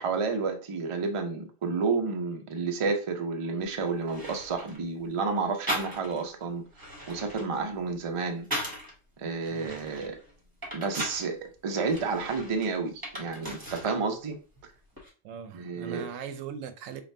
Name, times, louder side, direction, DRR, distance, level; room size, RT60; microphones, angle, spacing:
voice 1, 0.0-8.5 9.2-10.2 10.7-14.4 15.5-16.1, right 4 dB, 40° right, 0.4 m, -31 dB
sound 1, 3.6-3.7 4.1-4.8 5.7-6.3 6.7-8.9 9.4-11.3 11.8-14.0 14.3-15.1, equal, 20° right, 1.1 m, -38 dB
voice 2, 15.2-17.0, right 8 dB, 85° right, 1.0 m, -39 dB
5.2 x 2.4 x 2.7 m
omnidirectional pair, 1.3 m